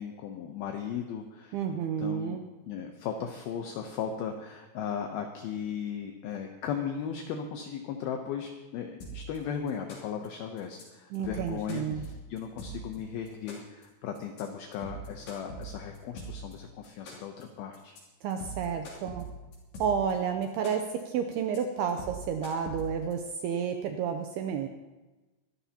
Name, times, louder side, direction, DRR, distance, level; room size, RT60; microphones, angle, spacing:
voice 1, 0.0-2.4 2.7-18.0, left 7 dB, 80° left, 4 dB, 2.2 m, -37 dB
voice 2, 1.5-2.5 11.1-12.0 18.2-19.2 19.8-24.7, right 7 dB, 85° right, 5 dB, 2.3 m, -31 dB
sound 1, 9.0-9.4 9.7-10.3 10.6-10.8 11.1-13.0 13.3-13.8 14.2-14.4 14.7-16.5 16.8-17.4 17.7-18.0 18.3-20.1 20.4-21.0 21.3-21.6 21.9-23.1, right 2 dB, 60° left, 4.9 m, -41 dB
24.0 x 12.5 x 2.9 m, 1.2 s
omnidirectional pair, 5.4 m